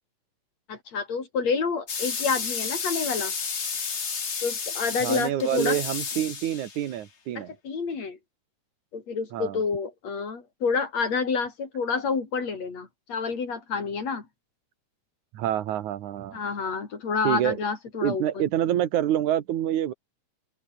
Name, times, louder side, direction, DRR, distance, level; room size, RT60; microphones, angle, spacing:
voice 1, 0.7-3.3 4.4-5.8 7.4-8.2 8.9-14.3 16.3-18.2, left 5 dB, 65° left, 5.2 m, -28 dB
sound 1, 1.9-6.9, left 6 dB, 35° left, 1.1 m, -32 dB
voice 2, 5.0-7.5 9.3-9.6 15.3-16.4 17.2-17.6 18.0-19.9, right 11 dB, 85° right, 2.9 m, -27 dB
open air
omnidirectional pair, 3.3 m